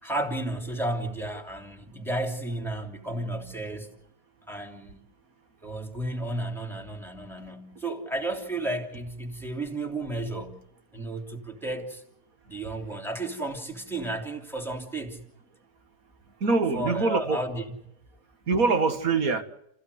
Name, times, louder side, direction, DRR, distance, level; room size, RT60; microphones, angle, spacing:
voice 1, 0.0-3.9 4.5-5.0 5.6-10.6 10.9-12.0 12.5-15.2 16.7-17.6, right 1 dB, ahead, 3.0 m, -33 dB
voice 2, 16.4-17.4 18.5-19.4, right 4 dB, 60° right, 2.1 m, -24 dB
29.0 x 16.0 x 8.2 m
omnidirectional pair, 1.7 m